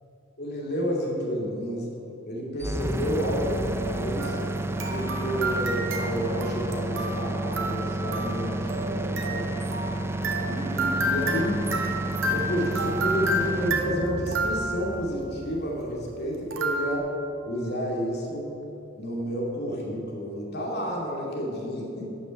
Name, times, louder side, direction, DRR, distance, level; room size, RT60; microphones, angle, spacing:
voice 1, 0.4-1.9 2.2-4.4 4.9-9.5 10.4-11.7 12.2-17.1 17.5-18.6 19.0-22.1, equal, 55° left, -2 dB, 2.6 m, -30 dB
sound 1, 2.6-16.5, right 1 dB, 10° right, 0.5 m, -31 dB
sound 2, 4.2-15.1 16.5-17.0, right 1 dB, 70° right, 1.5 m, -31 dB
12.5 x 6.2 x 8.9 m, 2.9 s
head